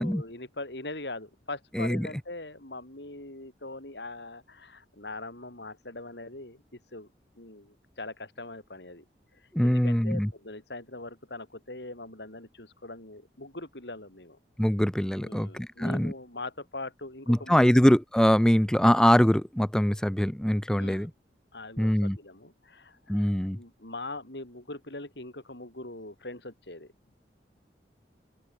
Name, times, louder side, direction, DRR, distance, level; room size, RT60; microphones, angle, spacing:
voice 1, 0.0-7.1 7.3-9.0 9.3-14.4 15.2-17.8 20.8-21.1 21.5-27.2, left 2 dB, 75° left, 4.7 m, -42 dB
voice 2, 1.7-2.1 9.5-10.3 14.6-16.1 17.3-21.1 21.8-22.2 23.1-23.6, equal, 5° left, 0.5 m, -23 dB
open air
head